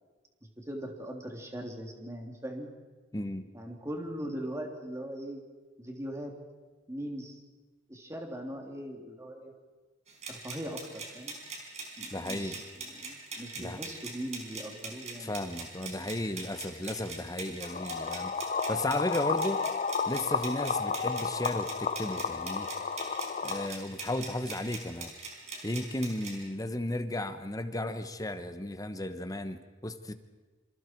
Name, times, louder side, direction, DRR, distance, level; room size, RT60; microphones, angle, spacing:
voice 1, 0.6-2.7 3.5-5.4 5.8-6.3 6.9-7.3 7.9-9.5 10.3-11.4 12.0-15.4, equal, 15° right, 1 dB, 3.2 m, -40 dB
voice 2, 3.1-3.4 12.1-12.6 13.6-13.8 15.2-18.3 18.7-19.6 20.1-22.7 23.4-25.1 25.6-30.1, left 1 dB, 20° left, 9 dB, 1.1 m, -34 dB
sound 1, 10.1-26.3, right 3 dB, 35° right, 4.9 m, -42 dB
sound 2, 17.6-23.7, left 5 dB, 40° left, 0.7 m, -32 dB
27.5 x 26.5 x 4.6 m, 1.3 s
head